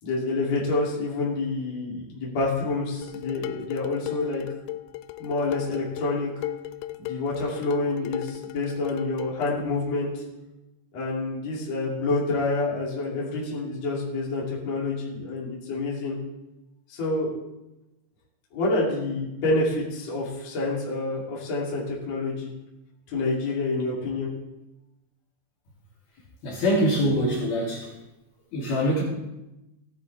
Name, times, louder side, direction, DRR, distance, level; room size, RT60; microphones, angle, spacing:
voice 1, 0.0-4.4 5.2-6.4 7.0-10.2 10.9-16.2 16.9-17.4 18.5-22.5 23.1-24.3, left 2 dB, 40° left, -6 dB, 3.7 m, -28 dB
Dishes pots and pans, 3.0-9.6, left 16 dB, 85° left, 2.9 m, -37 dB
voice 2, 26.4-27.9 28.5-29.0, equal, 55° left, -5 dB, 4.5 m, -24 dB
17.0 x 11.0 x 3.5 m, 0.96 s
omnidirectional pair, 5.4 m